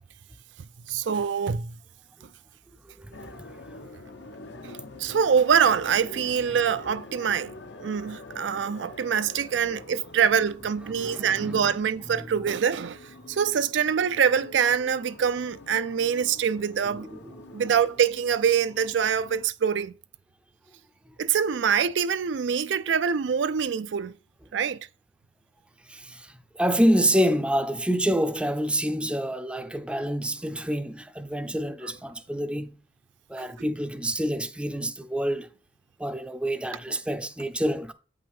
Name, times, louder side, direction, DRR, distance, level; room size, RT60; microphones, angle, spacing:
voice 1, 0.9-1.8 4.6-17.1 17.5-19.9 21.2-24.1 24.5-24.9 33.4-33.5, right 7 dB, 75° right, 0.4 m, -25 dB
voice 2, 3.0-3.5 9.5-9.7 10.9-11.7 16.9-17.2 17.5-17.6 25.9-32.8 33.3-35.5 36.0-37.9, equal, 5° right, 0.5 m, -27 dB
sound 1, 3.1-19.5, left 2 dB, 65° left, 0.8 m, -46 dB
8.5 x 5.4 x 3.5 m
head